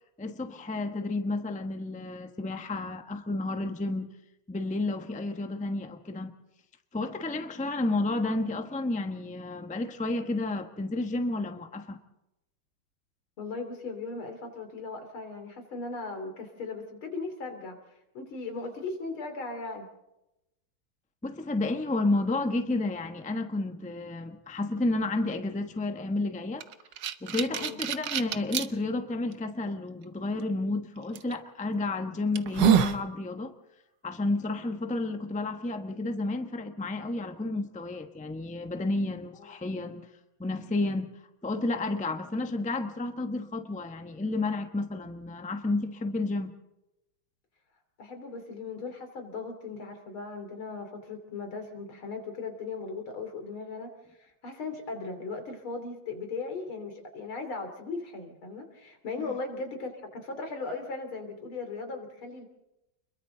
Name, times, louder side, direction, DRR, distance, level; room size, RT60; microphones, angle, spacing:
voice 1, 0.2-4.1 4.5-6.3 6.9-12.0 21.2-26.6 27.2-33.5 34.0-40.1 40.4-41.1 41.4-46.5 59.2-59.3, left 2 dB, 5° left, 6 dB, 0.7 m, -31 dB
voice 2, 13.4-17.8 18.1-19.9 27.5-27.8 48.0-53.9 54.2-62.4, left 3 dB, 85° left, 5 dB, 3.8 m, -38 dB
sound 1, 26.6-28.7 29.3-29.4 31.2-31.3 31.9-32.0 32.4-33.0, right 12 dB, 65° right, 1.4 m, -26 dB
29.5 x 22.5 x 3.9 m, 0.91 s
omnidirectional pair, 2.2 m